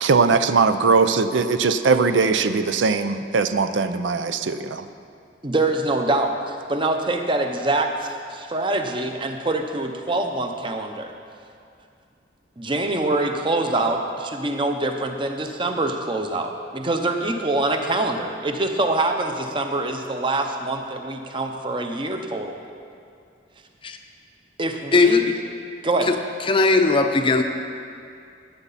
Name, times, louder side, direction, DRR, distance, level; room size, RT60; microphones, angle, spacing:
voice 1, 0.0-4.9, right 4 dB, 85° right, 10 dB, 0.5 m, -20 dB
voice 2, 5.4-11.1 12.6-22.6 24.6-25.3 25.8-26.1, right 2 dB, 25° right, 4 dB, 0.8 m, -25 dB
voice 3, 24.9-25.2 26.1-26.2 26.5-27.4, left 3 dB, 30° left, 6 dB, 0.6 m, -18 dB
15.5 x 8.3 x 4.1 m, 2.4 s
head